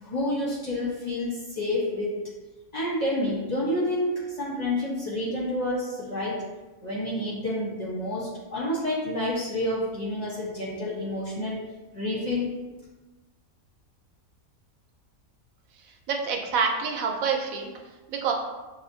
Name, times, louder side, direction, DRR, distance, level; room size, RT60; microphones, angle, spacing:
voice 1, 0.0-2.3 2.7-6.4 6.8-11.6 11.9-12.6, left 1 dB, 40° left, -6 dB, 0.7 m, -29 dB
voice 2, 15.8-17.7 18.1-18.3, right 6 dB, 75° right, 1 dB, 1.0 m, -27 dB
6.1 x 2.1 x 2.6 m, 1.2 s
omnidirectional pair, 1.5 m